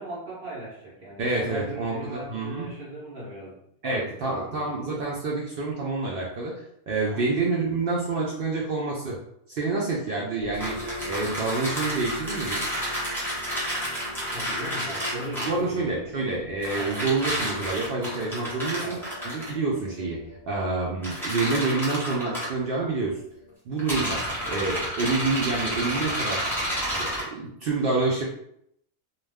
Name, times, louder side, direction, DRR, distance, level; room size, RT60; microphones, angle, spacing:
voice 1, 0.0-4.7 7.1-7.3 14.3-16.1 16.7-17.0 18.8-19.1, right 1 dB, 55° right, -8 dB, 0.8 m, -39 dB
voice 2, 1.2-2.7 3.8-6.5 6.9-9.2 9.5-12.6 15.5-19.0 19.2-20.2 20.5-23.2 23.7-26.4 26.8-28.2, right 3 dB, 80° right, -3 dB, 0.5 m, -28 dB
sound 1, 10.4-23.5, left 1 dB, 55° left, 0.7 m, -44 dB
sound 2, 10.5-15.6 16.6-19.5 21.0-22.5 23.8-27.2, equal, ahead, 0.7 m, -30 dB
2.3 x 2.3 x 3.3 m, 0.74 s
omnidirectional pair, 1.5 m